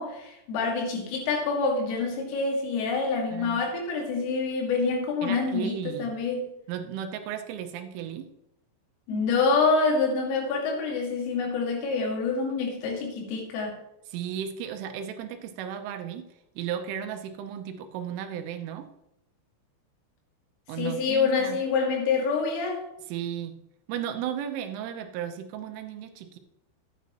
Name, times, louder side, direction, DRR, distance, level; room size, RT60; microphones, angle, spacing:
voice 1, 0.0-6.5 9.1-13.8 20.8-22.9, left 4 dB, 80° left, 4.5 m, -26 dB
voice 2, 3.3-3.6 5.2-6.1 6.7-8.3 14.1-18.9 20.7-21.6 23.1-23.6 23.9-26.4, right 9 dB, 80° right, 3.3 m, -35 dB
12.0 x 9.3 x 2.9 m
omnidirectional pair, 5.8 m